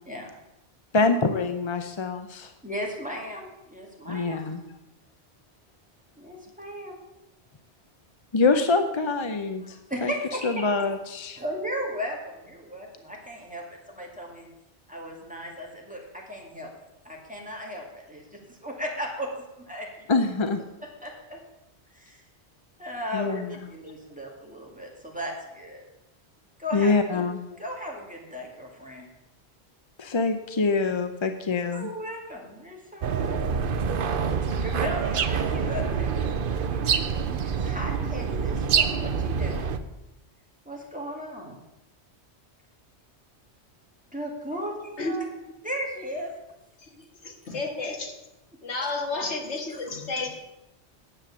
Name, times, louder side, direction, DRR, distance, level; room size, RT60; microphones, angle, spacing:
voice 1, 0.9-2.5 4.1-4.6 8.3-9.8 10.0-10.1 10.4-11.4 20.1-20.6 23.1-23.6 26.7-27.4 30.0-31.9, left 3 dB, 35° left, 7 dB, 0.5 m, -25 dB
voice 2, 2.6-4.4 6.2-7.0 9.6-10.7 11.3-14.5 14.9-19.3 19.6-20.1 20.8-21.4 21.9-22.2 22.8-25.8 26.6-27.2 27.6-29.1 31.7-33.7 34.2-37.0 37.3-39.7 40.7-41.6 44.1-45.3 45.6-46.3 48.8-48.9, equal, 5° right, -2 dB, 2.3 m, -36 dB
sound 1, 33.0-39.8, right 6 dB, 55° right, 0.8 m, -26 dB
voice 3, 46.8-48.1 48.6-50.3, left 3 dB, 90° left, 3 dB, 1.9 m, -32 dB
10.0 x 7.7 x 7.0 m, 0.94 s
omnidirectional pair, 1.1 m